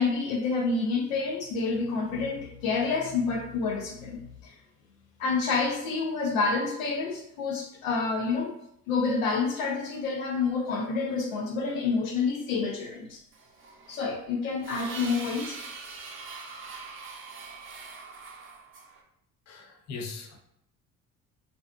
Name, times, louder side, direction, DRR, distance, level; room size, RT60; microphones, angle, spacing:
voice 1, 0.0-4.5 5.2-8.5 8.9-13.2 13.9-15.6, left 4 dB, 85° left, 1 dB, 0.5 m, -28 dB
sound 1, 13.3-19.0, right 4 dB, 30° right, 0.5 m, -42 dB
voice 2, 19.5-20.4, left 4 dB, 45° left, 2 dB, 0.7 m, -39 dB
2.5 x 2.3 x 2.3 m, 0.75 s
hypercardioid pair, 65°, 39 cm